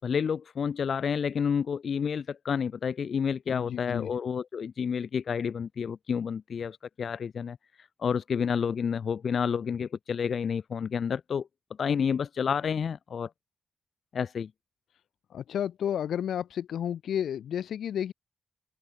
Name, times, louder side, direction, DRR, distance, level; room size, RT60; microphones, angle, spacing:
voice 1, 0.0-7.6 8.0-11.5 11.8-13.3 14.1-14.5, left 7 dB, 55° left, 3.5 m, -29 dB
voice 2, 3.5-4.1 15.3-18.1, left 9 dB, 85° left, 4.5 m, -31 dB
wide cardioid pair, 135°, 0 cm